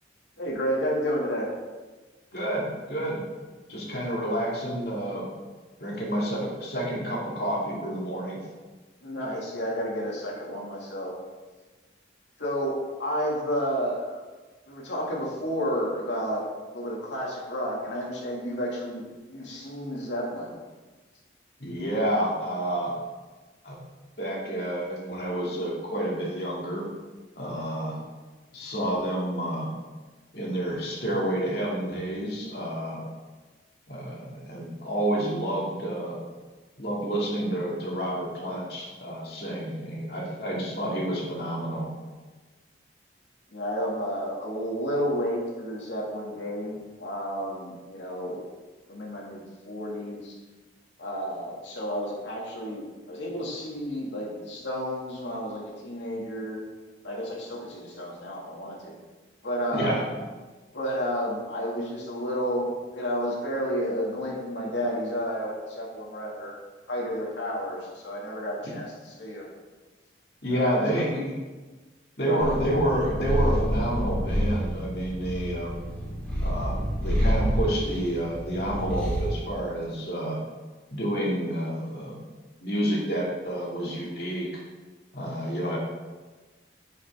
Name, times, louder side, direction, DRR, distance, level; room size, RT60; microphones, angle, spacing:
voice 1, 0.4-1.5 9.0-11.1 12.4-14.2 14.7-16.4 16.7-19.0 19.3-20.6 43.5-48.5 48.9-50.3 51.0-56.6 57.0-58.9 59.4-60.2 60.7-66.5 66.9-69.5 70.5-71.0 72.2-72.5, equal, 80° left, -3 dB, 2.2 m, -31 dB
voice 2, 2.3-3.2 3.7-5.3 5.8-8.4 21.6-22.9 23.6-23.8 24.2-26.9 27.4-28.0 28.5-29.7 30.3-33.0 33.9-36.2 36.8-41.9 59.7-60.0 68.6-68.7 70.4-71.3 72.2-75.7 76.4-80.4 80.9-82.2 82.6-84.6 85.1-85.8, right 1 dB, 60° left, -4 dB, 2.3 m, -29 dB
Purr, 72.4-79.3, equal, 5° left, 2.2 m, -28 dB
10.0 x 5.7 x 3.6 m, 1.3 s
head